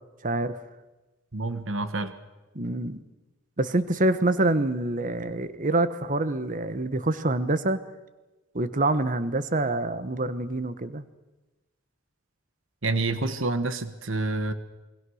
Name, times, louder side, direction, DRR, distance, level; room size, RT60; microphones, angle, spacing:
voice 1, 0.2-0.6 2.5-3.0 3.6-7.8 8.5-11.0, right 2 dB, 40° right, 13 dB, 1.1 m, -26 dB
voice 2, 1.3-2.1 12.8-14.5, right 2 dB, 65° right, 11 dB, 1.5 m, -28 dB
28.0 x 21.5 x 6.5 m, 1.1 s
head